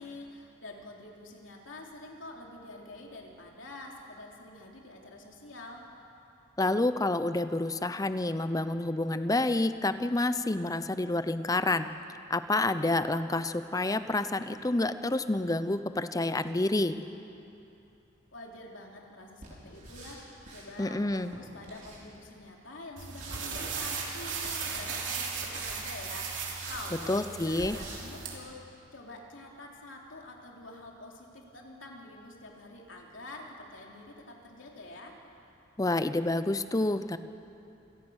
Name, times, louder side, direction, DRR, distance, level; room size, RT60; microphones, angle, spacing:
voice 1, 0.0-5.8 18.3-20.2 20.5-35.2, left 2 dB, 75° left, 0 dB, 3.2 m, -47 dB
voice 2, 6.6-11.9 12.3-17.0 20.8-21.4 27.1-27.8 35.8-37.2, left 2 dB, 20° left, 11 dB, 0.7 m, -28 dB
sound 1, 19.4-20.7 21.0-22.3 23.0-23.4 24.3-24.6 25.3-25.9 26.5-26.8 27.3-27.4 27.7-28.0, right 2 dB, 40° right, 4.9 m, -48 dB
sound 2, 23.0-28.3, right 5 dB, 70° right, 3.1 m, -37 dB
28.0 x 17.5 x 6.4 m, 2.7 s
head